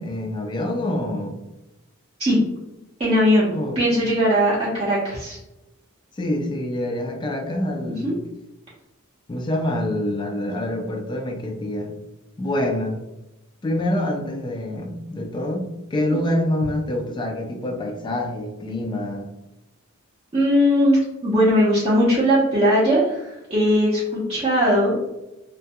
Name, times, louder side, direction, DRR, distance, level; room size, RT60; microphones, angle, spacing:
voice 1, 0.0-1.4 3.5-3.8 6.2-8.2 9.3-12.0 12.4-13.0 13.6-19.3, left 1 dB, 20° left, 3 dB, 0.3 m, -26 dB
voice 2, 3.0-5.4 8.0-8.1 20.3-25.0, equal, 30° right, -8 dB, 0.5 m, -19 dB
2.3 x 2.1 x 2.7 m, 0.95 s
head